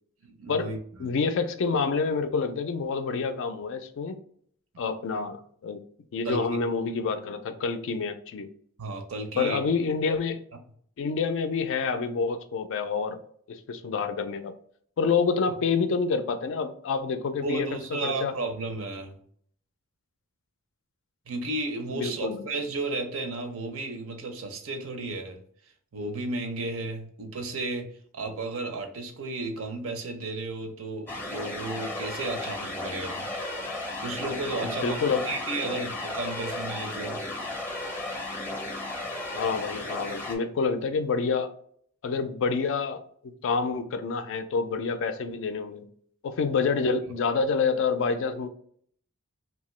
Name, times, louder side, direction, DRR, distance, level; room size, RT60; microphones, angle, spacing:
voice 1, 0.2-1.1 6.2-6.5 8.8-9.6 17.4-19.2 21.3-25.4 25.9-27.9 28.1-33.3 34.0-37.2, right 2 dB, 70° right, 0.5 m, -33 dB
voice 2, 1.0-4.2 4.8-5.8 6.1-8.5 9.4-10.4 11.0-13.2 13.5-14.5 15.0-18.3 21.9-22.4 34.6-35.3 39.3-41.5 42.0-43.0 43.4-45.9 46.2-48.5, left 5 dB, 65° left, 0.3 m, -27 dB
sound 1, 31.1-40.4, left 2 dB, 10° left, 0.5 m, -34 dB
2.8 x 2.2 x 3.1 m
head